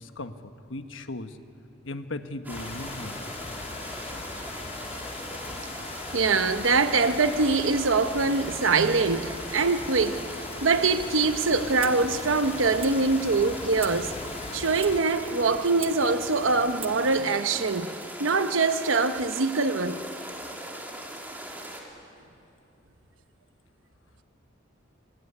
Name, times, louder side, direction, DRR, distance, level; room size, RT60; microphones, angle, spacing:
voice 1, 0.0-1.4 1.8-3.2, left 2 dB, 75° left, 1.3 m, -37 dB
sound 1, 2.4-21.8, right 1 dB, 10° right, 3.2 m, -40 dB
sound 2, 2.5-15.0, left 4 dB, 30° left, 0.7 m, -40 dB
voice 2, 6.1-10.2 10.6-14.1 14.5-17.9 18.2-20.0, right 4 dB, 80° right, 0.9 m, -23 dB
Clock, 11.6-17.2, right 4 dB, 30° right, 1.2 m, -44 dB
25.5 x 20.0 x 9.9 m
head